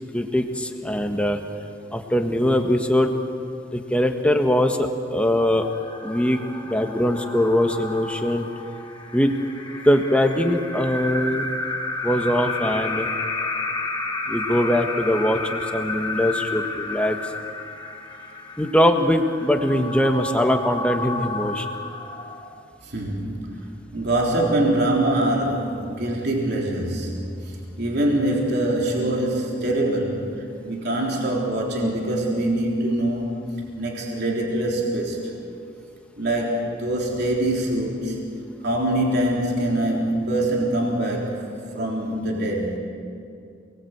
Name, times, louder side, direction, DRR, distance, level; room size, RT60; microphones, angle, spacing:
voice 1, 0.1-1.4 1.9-3.1 3.7-5.7 6.0-6.4 6.7-8.5 9.1-9.3 9.8-11.5 12.0-13.1 14.3-17.2 18.6-21.7, equal, 5° left, 4 dB, 1.5 m, -21 dB
sound 1, 5.4-22.8, left 2 dB, 20° left, 2.3 m, -31 dB
voice 2, 22.8-33.4 33.8-35.3 36.2-38.3 38.6-41.4 41.7-42.8, right 1 dB, 55° right, -2 dB, 3.7 m, -24 dB
28.5 x 20.5 x 8.1 m, 2.4 s
head